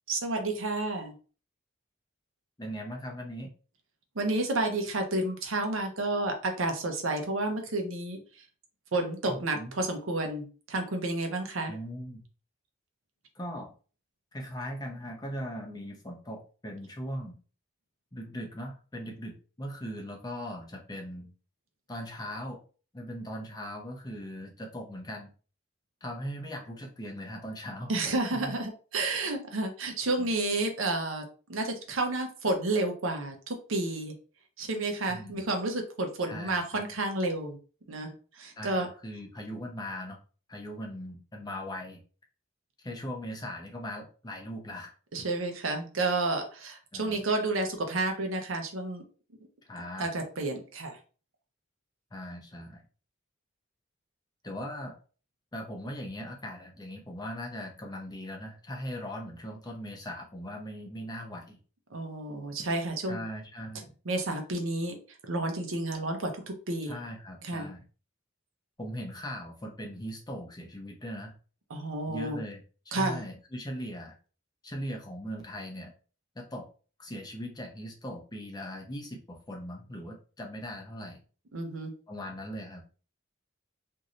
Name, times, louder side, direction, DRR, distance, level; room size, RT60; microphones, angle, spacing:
voice 1, 0.1-1.1 4.1-8.4 8.9-11.8 27.9-34.1 34.6-37.6 37.9-38.9 45.1-49.0 50.0-51.0 61.9-63.2 64.0-65.0 65.2-66.9 67.4-67.7 71.7-72.4 72.9-73.2 81.5-81.9, right 2 dB, 85° right, 4 dB, 0.7 m, -31 dB
voice 2, 2.6-3.5 9.3-9.7 11.7-12.2 13.4-13.7 14.3-17.4 18.1-21.3 21.9-22.6 22.9-25.3 26.0-27.9 28.3-28.5 30.2-30.3 35.1-35.4 36.3-36.9 38.6-40.2 40.5-42.0 42.8-44.9 46.9-47.2 49.7-50.1 52.1-52.8 54.4-54.9 55.5-61.6 63.1-63.9 66.9-67.8 68.8-71.3 72.1-74.2 74.6-75.9 76.4-76.7 77.0-81.2 82.1-82.8, equal, 20° left, 1 dB, 0.6 m, -39 dB
3.0 x 2.6 x 2.5 m, 0.37 s
head